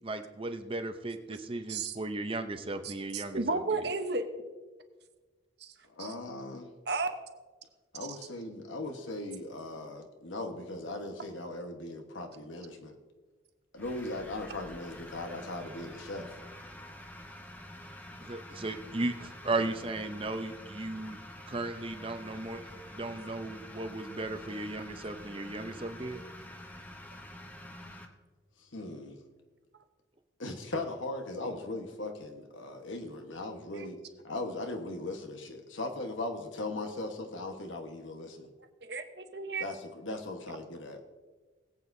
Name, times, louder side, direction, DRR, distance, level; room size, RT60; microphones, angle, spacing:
voice 1, 0.0-3.9 18.2-21.2 21.5-26.2, right 2 dB, 30° right, 8 dB, 0.6 m, -36 dB
voice 2, 2.8-4.2 5.6-5.7 6.0-6.1 6.9-7.1 33.8-33.9 38.8-39.6, right 3 dB, 60° right, 7 dB, 0.9 m, -33 dB
voice 3, 5.9-6.7 7.9-13.0 13.7-16.3 28.6-29.2 30.4-34.0 34.2-38.5 39.6-41.1, left 2 dB, 85° left, 5 dB, 1.3 m, -39 dB
sound 1, 13.8-28.1, left 1 dB, 10° left, 0.8 m, -47 dB
20.5 x 8.3 x 2.7 m, 1.3 s
head